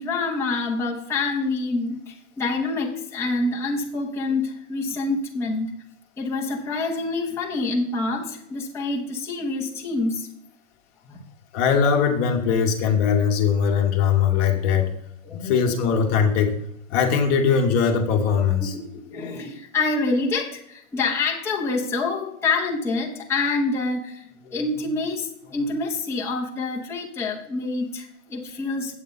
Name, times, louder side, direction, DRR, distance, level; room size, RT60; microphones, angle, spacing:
voice 1, 0.0-5.7 6.2-10.3 11.1-11.2 15.2-15.6 18.6-28.9, left 3 dB, 5° left, -3 dB, 0.8 m, -27 dB
voice 2, 11.5-14.9 15.4-16.5 16.9-18.7, left 6 dB, 30° left, 3 dB, 1.2 m, -20 dB
8.3 x 8.1 x 4.1 m, 0.74 s
hypercardioid pair, 145°, 42 cm